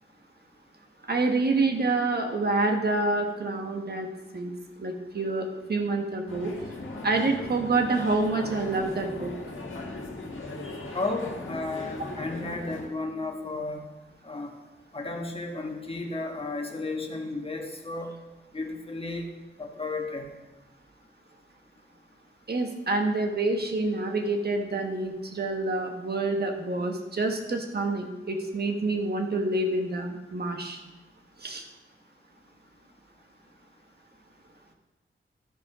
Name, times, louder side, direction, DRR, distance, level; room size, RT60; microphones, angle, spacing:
voice 1, 1.1-4.1 4.3-4.5 4.8-6.5 7.0-9.3 22.5-30.8 31.4-31.6, right 2 dB, 50° right, 4 dB, 1.3 m, -27 dB
sound 1, 6.3-12.9, left 2 dB, 75° left, 1.6 m, -38 dB
voice 2, 10.9-13.8 14.2-14.5 14.9-18.1 18.5-19.3 19.6-20.3, left 2 dB, 25° left, 2 dB, 1.3 m, -33 dB
13.0 x 5.2 x 5.0 m, 1.1 s
wide cardioid pair, 140°, 21 cm